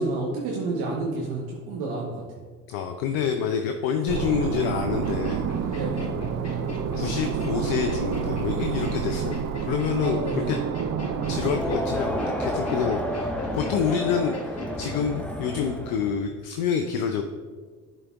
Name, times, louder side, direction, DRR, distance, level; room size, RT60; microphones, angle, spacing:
voice 1, 0.0-2.1 5.7-6.1 10.0-10.5, right 2 dB, 60° right, -3 dB, 1.1 m, -29 dB
voice 2, 2.7-5.8 6.9-10.6 11.3-14.4 14.8-17.2, left 7 dB, 65° left, 6 dB, 0.6 m, -27 dB
sound 1, 4.1-11.6, right 7 dB, 40° right, 0.5 m, -29 dB
sound 2, 5.0-15.0, left 3 dB, 35° left, 1.3 m, -42 dB
Crowd, 11.1-16.2, equal, 5° left, 0.7 m, -30 dB
11.0 x 4.0 x 2.4 m, 1.5 s
figure-of-eight pair, 50°, 42 cm